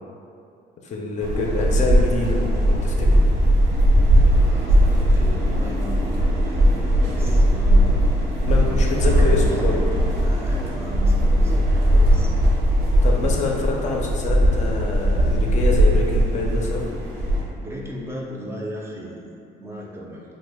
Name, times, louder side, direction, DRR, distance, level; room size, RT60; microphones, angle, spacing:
voice 1, 0.8-2.4 2.7-3.2 7.2-7.5 8.4-9.8 13.0-16.9, left 3 dB, 45° left, 0 dB, 0.4 m, -26 dB
sound 1, 1.2-17.4, equal, 75° right, 0.6 m, -19 dB
voice 2, 4.2-6.7 7.1-8.0 9.1-12.3 17.6-19.2 19.6-20.2, equal, 15° right, -3 dB, 0.4 m, -37 dB
3.0 x 2.1 x 3.4 m, 2.5 s
cardioid pair, 110°, 17 cm